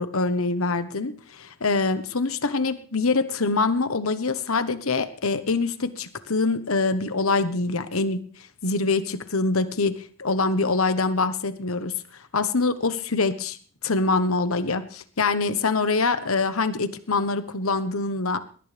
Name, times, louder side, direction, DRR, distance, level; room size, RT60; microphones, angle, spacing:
voice 1, 0.0-8.2 8.6-11.9 12.3-13.6 13.8-18.4, left 3 dB, 85° left, 10 dB, 1.3 m, -24 dB
21.5 x 18.5 x 3.5 m, 0.43 s
head